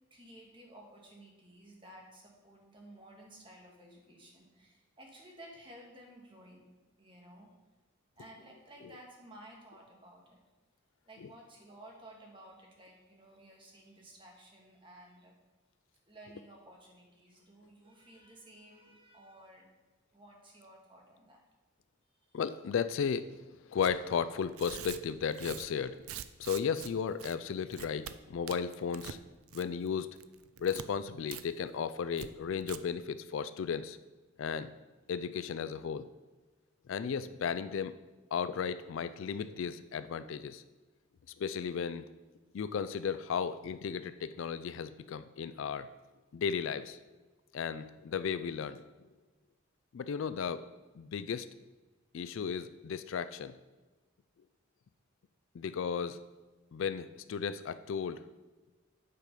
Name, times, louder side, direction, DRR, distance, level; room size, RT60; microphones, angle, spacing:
voice 1, 0.1-6.6 7.0-7.5 8.2-10.4 11.0-15.3 16.1-19.7 20.1-21.4 22.3-22.4, right 1 dB, 25° right, 0 dB, 1.6 m, -55 dB
voice 2, 22.3-23.4 23.7-26.0 26.4-29.2 29.5-30.1 30.6-34.0 34.4-34.7 35.1-36.1 36.9-38.0 38.3-40.6 41.4-42.1 42.5-45.9 46.3-47.0 47.5-48.8 49.9-50.6 50.9-51.5 52.1-53.6 55.5-56.2 56.7-58.2, left 6 dB, 65° left, 13 dB, 0.3 m, -35 dB
Tearing, 23.8-24.0 24.5-26.9 27.2-27.4 27.7-28.1 28.5-29.2 29.5-29.9 30.2-30.9 31.3-31.4 31.7-31.8 32.2-32.3 32.6-32.8, right 10 dB, 85° right, 0.4 m, -44 dB
9.1 x 5.0 x 5.3 m, 1.2 s
head